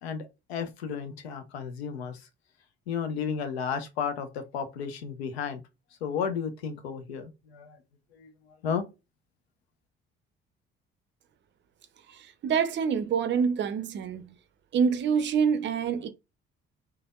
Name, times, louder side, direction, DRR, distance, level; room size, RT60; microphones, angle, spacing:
voice 1, 0.0-2.2 2.9-5.6 6.0-7.8 8.2-8.3 8.6-8.8, left 6 dB, 75° left, 0.6 m, -33 dB
voice 2, 12.4-14.3 14.7-16.1, right 6 dB, 35° right, 0.5 m, -26 dB
3.3 x 2.2 x 2.3 m
figure-of-eight pair, 45°, 32 cm